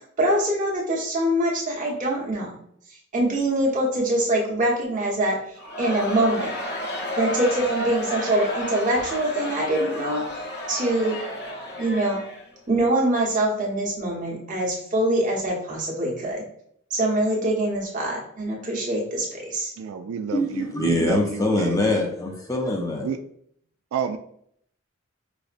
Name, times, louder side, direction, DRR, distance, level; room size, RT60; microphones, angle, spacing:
voice 1, 0.2-2.5 3.1-5.4 5.8-6.5 7.2-10.2 10.7-11.2 11.8-12.2 12.7-16.4 16.9-19.7, right 1 dB, 40° right, 1.0 m, -24 dB
Crowd, 5.6-12.8, left 1 dB, 50° left, 0.7 m, -32 dB
voice 2, 19.8-21.8 23.0-23.2 23.9-24.2, right 7 dB, 85° right, 0.3 m, -30 dB
voice 3, 20.3-23.1, left 1 dB, 15° left, 0.4 m, -23 dB
4.9 x 2.1 x 2.5 m
head